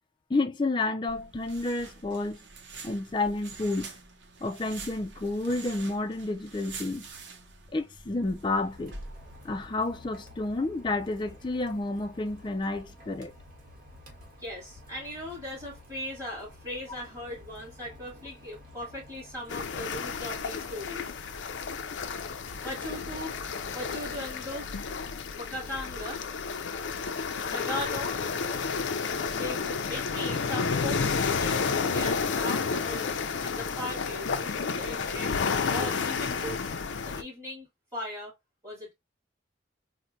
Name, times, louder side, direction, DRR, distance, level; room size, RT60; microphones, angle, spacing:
voice 1, 0.3-2.4 2.8-3.9 4.4-7.1 7.7-9.0 9.4-13.3, left 2 dB, 25° left, 0.4 m, -30 dB
sound 1, 1.1-9.6, right 4 dB, 70° right, 0.8 m, -46 dB
Rain, 7.9-25.2, left 1 dB, 50° right, 1.3 m, -52 dB
voice 2, 14.4-21.1 22.6-23.4 23.7-24.8 25.4-26.2 27.5-28.2 29.2-31.1 31.4-33.1 33.4-35.3 35.7-36.7 37.0-38.3 38.6-38.9, left 1 dB, 15° right, 2.5 m, -38 dB
sound 2, 19.5-37.2, left 5 dB, 85° left, 0.5 m, -31 dB
4.3 x 2.1 x 2.5 m
head